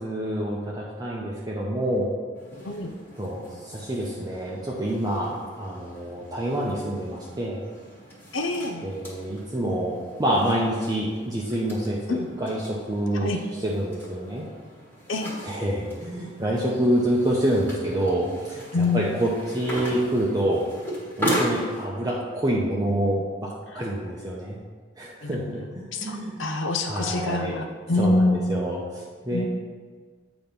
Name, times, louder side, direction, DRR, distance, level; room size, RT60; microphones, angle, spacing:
voice 1, 0.0-2.1 3.2-7.6 8.8-14.5 15.4-20.7 21.2-24.6 25.0-26.4 26.9-27.6 27.9-29.5, right 1 dB, 20° right, -4 dB, 0.6 m, -27 dB
sound 1, 2.3-21.9, right 1 dB, 10° left, 1.6 m, -37 dB
voice 2, 8.3-8.9 12.1-12.3 13.1-13.4 15.1-15.3 18.7-19.0 25.2-25.6 25.9-28.6 29.3-29.5, left 2 dB, 70° left, 5 dB, 0.6 m, -26 dB
8.4 x 3.0 x 5.2 m, 1.5 s
head